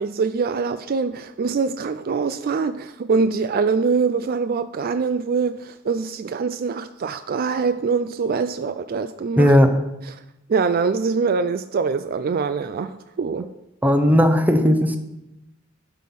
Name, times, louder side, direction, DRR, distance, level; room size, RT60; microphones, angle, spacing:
voice 1, 0.0-9.5 10.1-10.2 10.5-13.5, right 5 dB, 45° right, 0.4 m, -24 dB
voice 2, 9.4-9.7 13.8-15.0, equal, 10° right, 0.9 m, -16 dB
11.5 x 5.5 x 6.0 m
head